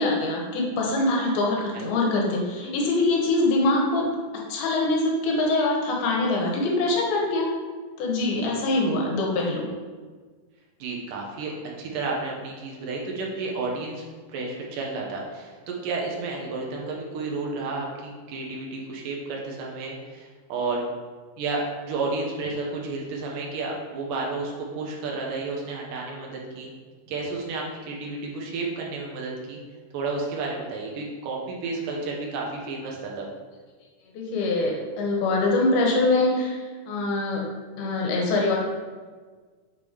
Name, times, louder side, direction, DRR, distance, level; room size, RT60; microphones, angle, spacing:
voice 1, 0.0-4.1 4.3-7.5 8.0-9.7 34.1-37.4 37.8-38.6, left 2 dB, 90° left, -1 dB, 2.9 m, -24 dB
voice 2, 10.8-11.5 11.8-14.0 14.3-20.8 21.4-26.7 27.1-29.6 29.9-33.3, right 3 dB, 75° right, -1 dB, 2.3 m, -31 dB
6.8 x 3.7 x 4.8 m, 1.5 s
omnidirectional pair, 4.3 m